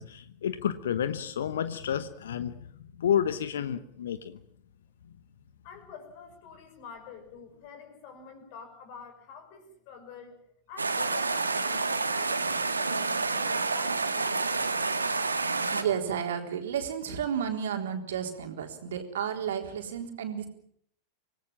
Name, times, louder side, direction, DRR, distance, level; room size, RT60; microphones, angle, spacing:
voice 1, 0.0-2.5 3.0-4.4, left 9 dB, 65° left, 13 dB, 1.0 m, -30 dB
voice 2, 5.6-10.4 10.7-14.8, left 6 dB, 45° left, 8 dB, 5.9 m, -48 dB
sound 1, 10.8-15.8, right 3 dB, 80° right, 1.8 m, -29 dB
voice 3, 15.7-20.5, right 8 dB, 60° right, 4 dB, 3.8 m, -32 dB
26.0 x 19.0 x 7.4 m, 0.67 s
figure-of-eight pair, 90°, 0 cm